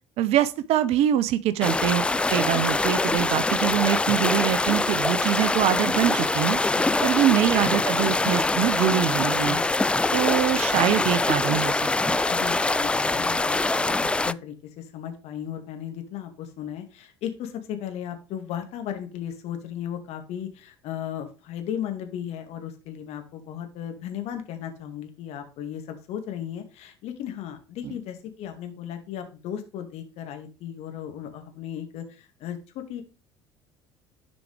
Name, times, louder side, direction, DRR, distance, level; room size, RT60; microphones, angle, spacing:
voice 1, 0.2-2.0 2.3-6.6 7.0-9.6 10.1-12.2, right 11 dB, 55° right, 0.6 m, -24 dB
sound 1, 1.6-14.3, left 2 dB, 10° left, 0.3 m, -24 dB
voice 2, 12.3-33.0, left 9 dB, 55° left, 2.0 m, -36 dB
11.0 x 5.2 x 3.3 m
hypercardioid pair, 65°, 13 cm